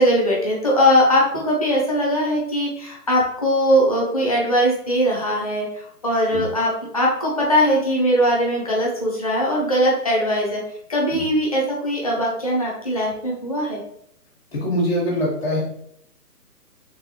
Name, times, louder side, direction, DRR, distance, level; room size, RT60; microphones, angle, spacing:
voice 1, 0.0-10.6 10.9-13.8, equal, 25° left, -3 dB, 0.6 m, -20 dB
voice 2, 14.5-15.6, equal, 40° left, -5 dB, 1.3 m, -23 dB
3.8 x 3.3 x 2.8 m, 0.69 s
hypercardioid pair, 160°, 47 cm